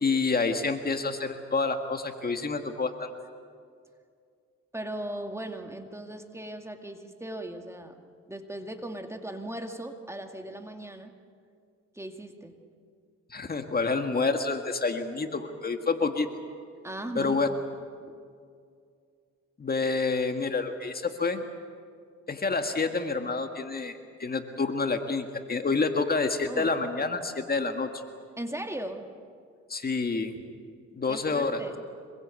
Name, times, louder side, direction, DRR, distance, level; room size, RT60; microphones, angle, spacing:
voice 1, 0.0-3.1 13.3-16.3 17.2-17.5 19.6-21.4 22.3-23.9 24.2-28.0 29.7-30.3 30.9-31.6, left 4 dB, 30° left, 6 dB, 1.9 m, -28 dB
voice 2, 4.7-8.0 8.3-11.1 11.9-12.6 16.8-17.5 18.0-18.2 26.5-26.7 28.4-29.0 31.1-31.8, right 1 dB, 10° right, 5 dB, 2.2 m, -38 dB
25.5 x 22.5 x 8.4 m, 2.2 s
cardioid pair, 90°, 30 cm